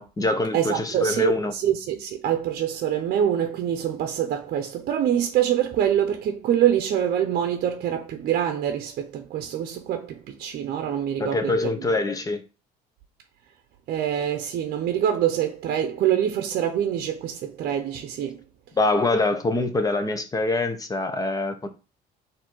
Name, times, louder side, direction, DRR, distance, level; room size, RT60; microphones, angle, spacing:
voice 1, 0.0-1.5 11.2-12.4 18.8-21.7, left 2 dB, 20° left, 0.8 m, -24 dB
voice 2, 0.5-11.9 13.9-18.4, right 10 dB, 65° right, 0.7 m, -25 dB
4.3 x 2.7 x 4.4 m
cardioid pair, 110°, 17 cm